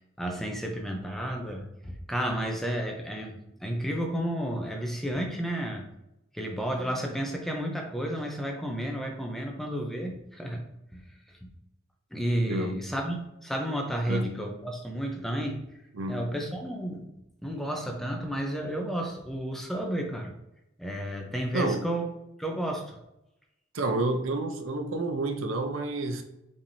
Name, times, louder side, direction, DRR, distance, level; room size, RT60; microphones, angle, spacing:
voice 1, 0.2-5.8 6.3-10.6 10.9-11.5 12.1-15.6 16.1-17.1 17.4-20.3 20.8-22.0 22.4-23.0, right 1 dB, ahead, 1 dB, 0.6 m, -32 dB
voice 2, 16.0-16.3 21.5-21.9 23.7-26.2, right 2 dB, 65° right, 6 dB, 0.6 m, -29 dB
5.3 x 3.4 x 2.7 m, 0.85 s
head